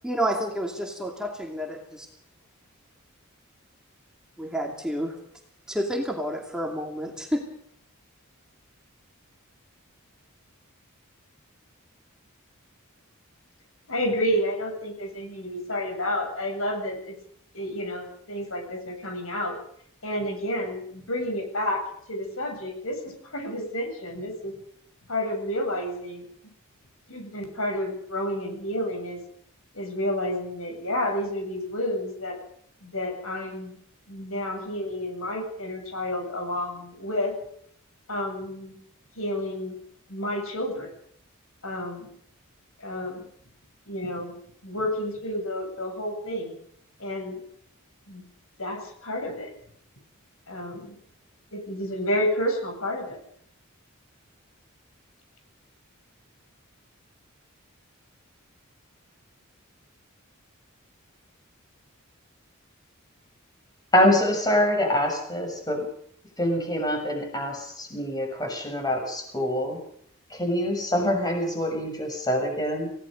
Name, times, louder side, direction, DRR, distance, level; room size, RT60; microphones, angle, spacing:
voice 1, 0.0-2.1 4.4-5.1 5.7-7.4, equal, 5° right, 1 dB, 2.6 m, -29 dB
voice 2, 13.9-17.1 17.5-19.6 20.0-21.8 22.1-24.5 25.1-26.3 27.1-29.2 29.7-32.4 32.8-33.8 34.1-37.3 38.1-38.8 39.2-39.8 40.1-40.9 41.6-42.1 42.8-43.2 43.9-44.3 44.6-46.6 47.0-47.4 48.1-48.2 48.6-49.5 50.5-51.0 51.5-53.2, left 1 dB, 75° left, 4 dB, 7.7 m, -30 dB
voice 3, 63.9-65.9 66.4-69.8 70.3-72.9, left 1 dB, 20° left, 3 dB, 6.6 m, -25 dB
28.5 x 18.0 x 5.4 m, 0.67 s
head